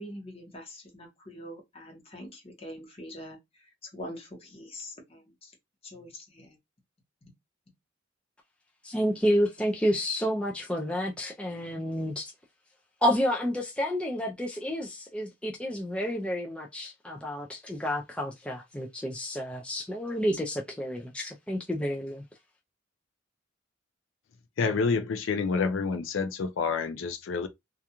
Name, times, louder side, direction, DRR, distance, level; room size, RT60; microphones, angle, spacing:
voice 1, 0.0-5.5 5.8-6.6, equal, 30° left, 0.9 m, -44 dB
voice 2, 8.8-12.3 13.0-22.2, equal, 5° left, 0.3 m, -30 dB
voice 3, 24.6-27.5, left 5 dB, 85° left, 0.4 m, -28 dB
2.4 x 2.2 x 2.8 m
head